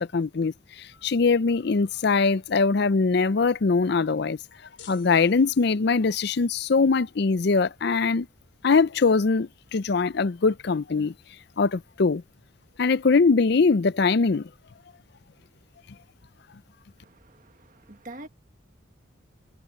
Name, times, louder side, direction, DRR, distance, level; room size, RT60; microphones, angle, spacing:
voice 1, 0.0-4.4 4.9-8.3 8.6-11.1 11.6-12.2 12.8-14.5, left 4 dB, 55° left, 0.5 m, -22 dB
sound 1, 4.8-6.1, left 9 dB, 70° left, 6.1 m, -51 dB
voice 2, 17.0-18.3, right 2 dB, 40° right, 1.7 m, -45 dB
head